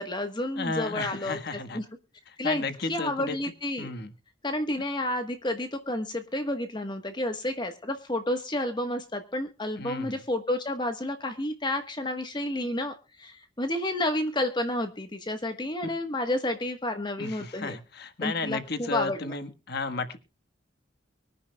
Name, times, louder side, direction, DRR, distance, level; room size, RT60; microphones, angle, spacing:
voice 1, 0.0-1.8 2.4-3.9 4.4-17.8 18.2-19.3, left 1 dB, 25° left, 6 dB, 1.2 m, -30 dB
voice 2, 0.6-1.8 2.3-3.4 3.8-4.1 9.8-10.2 15.8-15.9 17.2-20.2, left 3 dB, 55° left, 9 dB, 1.4 m, -33 dB
25.0 x 10.0 x 2.2 m, 0.32 s
head